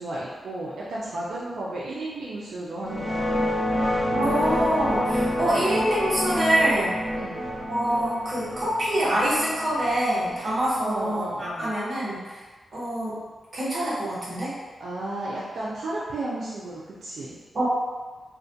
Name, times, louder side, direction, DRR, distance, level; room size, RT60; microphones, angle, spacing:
voice 1, 0.0-3.4 5.5-5.6 7.2-7.4 10.8-11.7 14.8-17.4, right 1 dB, 75° right, -6 dB, 0.3 m, -33 dB
sound 1, 2.8-11.5, left 1 dB, 15° right, 0.5 m, -28 dB
voice 2, 4.1-7.0 7.7-12.4 12.7-13.2 13.5-14.5 17.5-17.7, right 1 dB, 40° right, -9 dB, 0.8 m, -25 dB
2.4 x 2.1 x 2.6 m, 1.3 s
wide cardioid pair, 145°, 0 cm